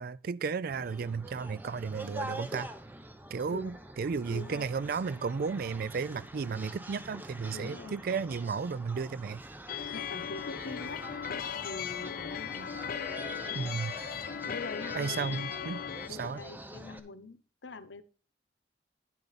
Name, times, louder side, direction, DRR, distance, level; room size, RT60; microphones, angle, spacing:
voice 1, 0.0-2.7 3.3-9.4 9.8-9.9 13.5-13.9 14.9-15.8 16.1-16.4, right 5 dB, 55° right, 0.4 m, -34 dB
sound 1, 0.7-17.0, right 1 dB, 10° right, 0.8 m, -45 dB
voice 2, 4.3-4.7 7.5-8.0 9.9-11.0 11.6-12.8 13.4-13.6 14.4-15.5 16.1-18.0, left 3 dB, 80° left, 0.8 m, -44 dB
sound 2, 9.7-16.1, left 8 dB, 50° left, 0.4 m, -37 dB
10.5 x 6.8 x 4.1 m
head